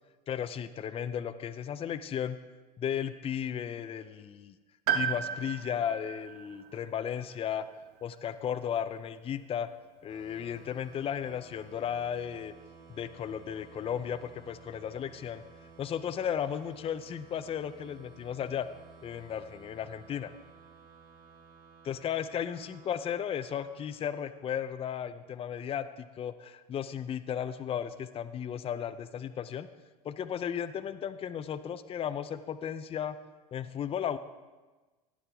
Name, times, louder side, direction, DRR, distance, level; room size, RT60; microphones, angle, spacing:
voice 1, 0.3-2.4 2.8-4.6 4.9-7.6 8.0-9.7 10.0-12.5 12.9-15.4 15.8-18.7 19.0-20.3 21.8-29.7 30.0-33.2 33.5-34.2, left 8 dB, 30° left, 11 dB, 0.6 m, -35 dB
Piano, 4.9-8.7 9.0-9.1 10.2-10.3, right 8 dB, 75° right, 1.0 m, -36 dB
sound 1, 10.1-25.5, right 5 dB, 50° right, 3.3 m, -55 dB
17.5 x 9.4 x 3.5 m, 1.3 s
hypercardioid pair, 90°, 20 cm